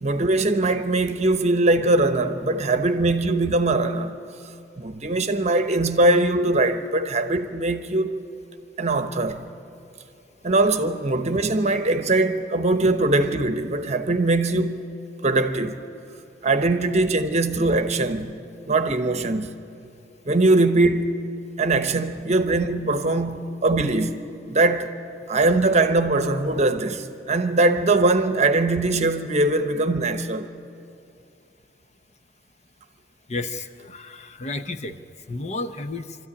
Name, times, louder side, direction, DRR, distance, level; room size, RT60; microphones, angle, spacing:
voice 1, 0.0-4.2 4.8-8.2 8.8-9.4 10.4-14.8 15.2-15.8 16.4-18.3 18.7-19.5 20.3-21.2 21.6-24.2 24.5-24.9 25.3-30.5, right 2 dB, 40° right, 1.0 m, -21 dB
voice 2, 33.3-35.0 35.3-36.2, left 2 dB, 40° left, 0.8 m, -32 dB
24.5 x 13.5 x 9.9 m
head